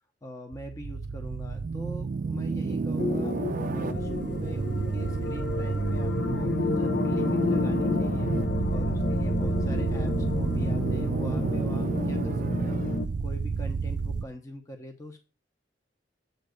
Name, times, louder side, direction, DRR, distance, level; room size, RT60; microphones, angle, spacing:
voice 1, 0.2-3.3 3.7-8.3 8.7-12.8 13.2-15.2, equal, 20° left, 4 dB, 0.9 m, -42 dB
sound 1, 0.5-14.2, right 4 dB, 45° right, 0.4 m, -30 dB
sound 2, 3.0-13.1, left 3 dB, 60° left, 0.6 m, -30 dB
8.0 x 3.1 x 6.3 m, 0.30 s
head